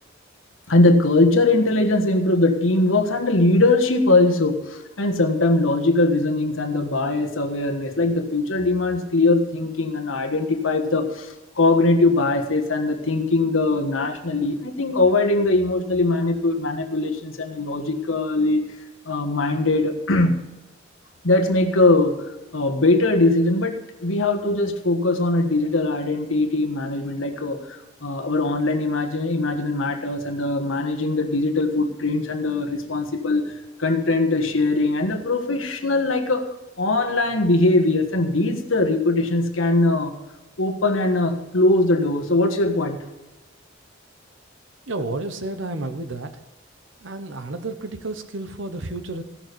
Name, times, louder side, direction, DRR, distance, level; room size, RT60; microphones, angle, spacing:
voice 1, 0.7-18.6 19.0-20.4 21.2-22.2 22.5-33.4 33.8-36.5 36.8-40.2 40.6-43.0, left 2 dB, 90° left, 4 dB, 1.5 m, -21 dB
voice 2, 44.9-46.3 47.0-49.2, right 2 dB, 70° right, 9 dB, 0.9 m, -31 dB
16.5 x 6.5 x 6.8 m, 1.1 s
head